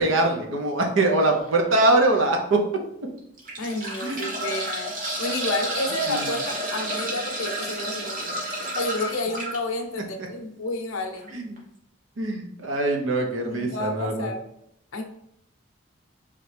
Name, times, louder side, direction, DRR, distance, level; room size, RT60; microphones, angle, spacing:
voice 1, 0.0-2.6 4.0-4.2 6.1-6.3 11.3-11.5 12.2-14.3, right 2 dB, 70° right, 3 dB, 0.7 m, -22 dB
sound 1, 1.2-1.5 2.1-2.2 3.2-9.6 11.2-11.3 11.6-11.7, right 1 dB, 40° right, 0.9 m, -31 dB
voice 2, 3.6-4.9 5.2-8.4 8.7-11.3 13.4-14.4 14.9-15.0, left 2 dB, 75° left, 4 dB, 0.6 m, -30 dB
3.8 x 3.2 x 3.2 m, 0.76 s
head